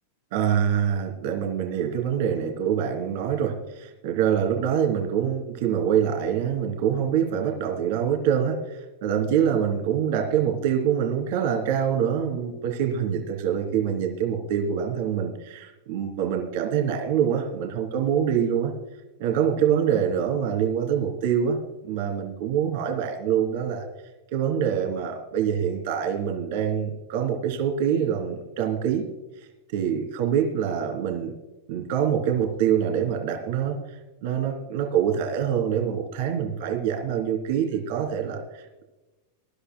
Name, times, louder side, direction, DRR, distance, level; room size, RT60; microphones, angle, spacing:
voice 1, 0.3-18.7 19.2-23.8 24.3-29.0 29.4-31.4 31.7-33.8 34.2-38.8, right 8 dB, 60° right, 2 dB, 3.0 m, -25 dB
23.5 x 12.0 x 2.2 m, 1.1 s
supercardioid pair, 130°, 0 cm